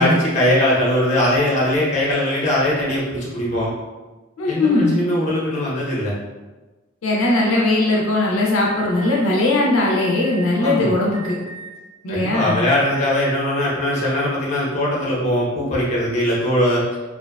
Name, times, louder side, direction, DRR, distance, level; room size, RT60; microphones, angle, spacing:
voice 1, 0.0-3.7 4.5-6.1 10.6-10.9 12.1-16.8, left 1 dB, 35° left, -6 dB, 0.7 m, -20 dB
voice 2, 4.4-5.0 7.0-11.4 12.0-12.6, left 2 dB, 80° left, -3 dB, 0.4 m, -19 dB
Alarm, 8.7-9.2 9.9-10.4 11.1-11.8 12.3-12.9, right 5 dB, 35° right, 0.5 m, -37 dB
2.5 x 2.2 x 2.3 m, 1.2 s
head